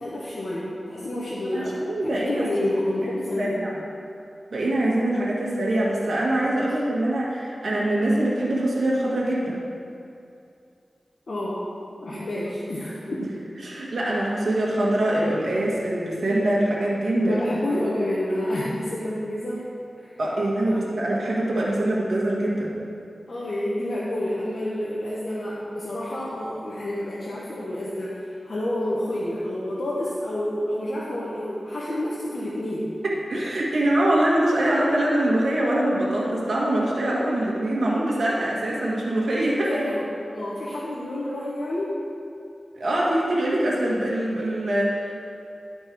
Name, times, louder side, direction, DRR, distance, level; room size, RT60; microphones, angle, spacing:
voice 1, 0.0-3.5 11.3-11.6 12.0-13.3 17.3-19.7 20.0-20.1 20.7-20.9 23.3-32.9 39.6-42.0, left 1 dB, 70° left, -7 dB, 1.1 m, -29 dB
voice 2, 1.5-2.7 3.4-3.7 4.5-9.6 12.1-12.3 13.6-17.4 20.2-22.7 33.0-39.8 42.8-45.1, right 1 dB, 75° right, -5 dB, 1.7 m, -24 dB
11.5 x 4.4 x 4.6 m, 2.5 s
wide cardioid pair, 70°, 0 cm